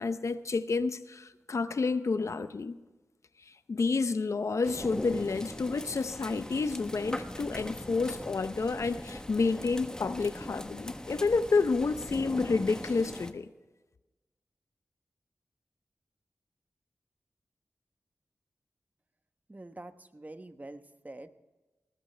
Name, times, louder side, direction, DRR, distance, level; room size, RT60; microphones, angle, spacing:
voice 1, 0.0-2.7 3.5-13.5, left 4 dB, 70° left, 0.7 m, -30 dB
sound 1, 4.6-13.3, left 1 dB, 15° left, 1.2 m, -40 dB
voice 2, 19.5-21.3, right 2 dB, 30° right, 1.0 m, -46 dB
19.0 x 14.5 x 3.4 m
cardioid pair, 45°, 5 cm